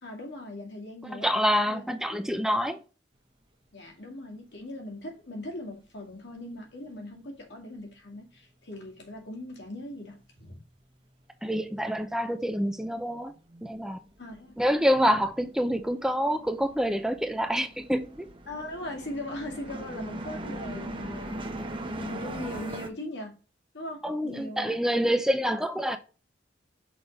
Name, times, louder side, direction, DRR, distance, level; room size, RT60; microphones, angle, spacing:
voice 1, 0.0-1.3 1.7-1.8 2.1-2.2 3.7-10.6 14.2-14.6 18.5-23.4 23.7-24.8, left 1 dB, 65° left, 2.1 m, -40 dB
voice 2, 1.1-2.8 11.4-13.3 13.6-14.0 14.6-18.3 24.0-26.0, equal, 5° right, 0.4 m, -27 dB
sound 1, 10.0-10.1 10.3-11.5 11.8-22.9, right 1 dB, 30° right, 1.0 m, -40 dB
6.1 x 3.5 x 5.2 m
head